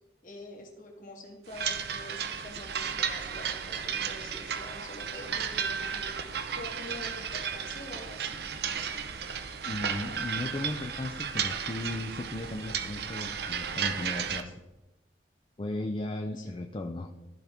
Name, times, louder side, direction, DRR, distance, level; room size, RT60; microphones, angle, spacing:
voice 1, 0.2-6.1 6.6-8.4 16.4-16.5, left 1 dB, 45° left, 1 dB, 1.5 m, -45 dB
sound 1, 1.5-14.4, right 7 dB, 60° right, 0.6 m, -34 dB
voice 2, 9.7-14.5 15.6-17.1, left 2 dB, 30° left, 4 dB, 0.4 m, -36 dB
14.0 x 5.2 x 3.5 m, 1.0 s
head